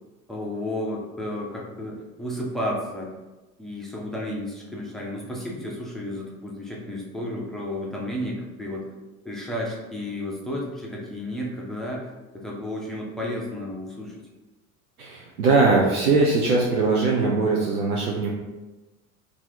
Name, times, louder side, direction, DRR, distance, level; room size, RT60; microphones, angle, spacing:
voice 1, 0.3-3.1 3.6-8.9 9.2-14.2, left 1 dB, ahead, -3 dB, 0.6 m, -32 dB
voice 2, 15.0-18.3, right 3 dB, 85° right, -3 dB, 0.6 m, -21 dB
2.7 x 2.5 x 3.8 m, 1.1 s
figure-of-eight pair, 70°, 43 cm